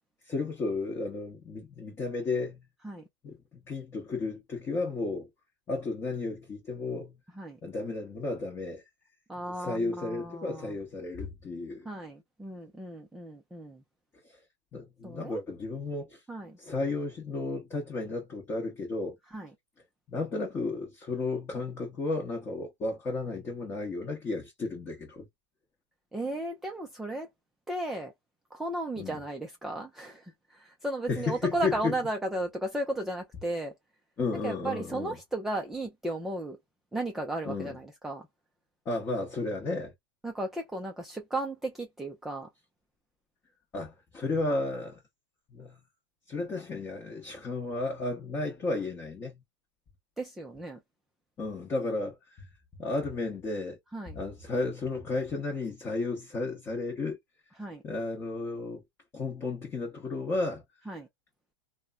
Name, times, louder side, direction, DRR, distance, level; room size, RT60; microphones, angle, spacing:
voice 1, 0.3-2.6 3.2-3.4 3.7-5.3 5.7-7.1 7.6-8.8 9.6-11.9 14.7-16.2 16.6-19.2 20.1-25.2 29.0-29.2 31.1-31.7 34.2-35.1 37.5-37.7 38.9-39.9 43.7-45.0 45.5-45.8 46.3-49.4 51.4-52.5 52.8-53.8 54.1-57.2 57.8-58.8 59.1-60.6, left 3 dB, 20° left, 0.8 m, -33 dB
voice 2, 9.3-10.8 11.8-13.8 15.0-15.4 16.3-16.6 19.3-19.5 26.1-27.3 27.7-28.1 28.5-33.7 34.4-36.6 36.9-38.3 40.2-42.5 50.2-50.8 53.9-54.2 57.6-57.8 60.9-61.1, right 1 dB, 5° right, 0.4 m, -35 dB
2.9 x 2.1 x 2.2 m
supercardioid pair, 140°, 13 cm